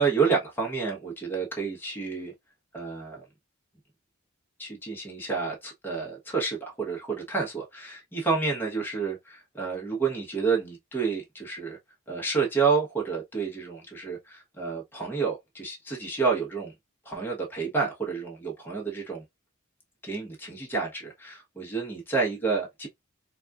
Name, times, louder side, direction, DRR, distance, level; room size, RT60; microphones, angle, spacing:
voice 1, 0.0-2.3 2.7-3.2 4.6-11.8 12.1-16.7 17.0-19.2 20.0-22.9, right 5 dB, 10° left, 1.0 m, -29 dB
4.0 x 2.3 x 2.3 m
head